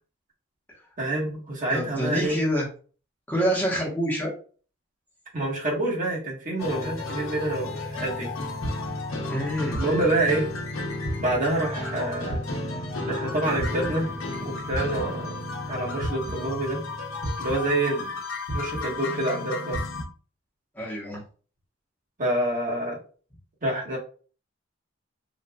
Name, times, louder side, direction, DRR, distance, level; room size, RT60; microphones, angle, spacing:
voice 1, 1.0-2.4 5.3-8.3 9.8-10.5 11.2-12.4 13.1-14.1 14.4-15.3 15.6-16.8 17.4-18.1 18.5-19.8 22.2-23.0 23.6-24.0, right 2 dB, 40° right, -3 dB, 1.3 m, -27 dB
voice 2, 1.7-2.7 3.3-4.3 9.3-9.8 11.0-11.2 20.7-21.2, equal, 10° left, -4 dB, 0.9 m, -27 dB
sound 1, 6.6-20.0, left 2 dB, 85° left, 0.8 m, -32 dB
3.9 x 2.4 x 2.2 m, 0.39 s
head